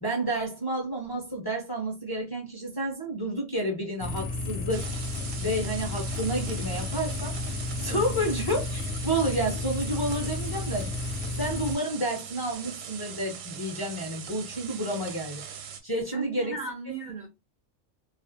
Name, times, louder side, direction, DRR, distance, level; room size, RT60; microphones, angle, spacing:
voice 1, 0.0-4.9 5.4-7.4 7.8-10.9 11.4-16.6, right 1 dB, 25° left, 0.5 m, -30 dB
sound 1, 4.0-11.8, left 3 dB, 70° left, 0.8 m, -32 dB
sound 2, 4.7-15.8, right 8 dB, 80° right, 0.9 m, -41 dB
voice 2, 7.9-8.3 16.1-17.3, right 3 dB, 60° right, 0.5 m, -37 dB
2.4 x 2.3 x 2.6 m
omnidirectional pair, 1.3 m